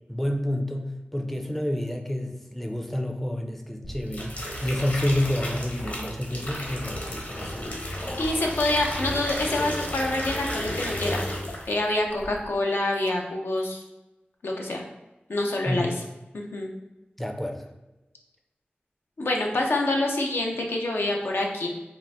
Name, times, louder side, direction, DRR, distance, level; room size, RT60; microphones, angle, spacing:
voice 1, 0.1-8.1 15.7-15.9 17.2-17.7, left 1 dB, 5° left, 4 dB, 0.4 m, -29 dB
sound 1, 3.8-11.8 12.1-12.5, left 1 dB, 50° left, 0.9 m, -33 dB
voice 2, 8.2-11.2 11.7-13.8 14.4-14.8 15.3-15.9 16.3-16.7 19.2-21.7, left 2 dB, 90° left, 0 dB, 0.6 m, -26 dB
3.7 x 2.5 x 3.4 m, 1.0 s
wide cardioid pair, 70°, 4 cm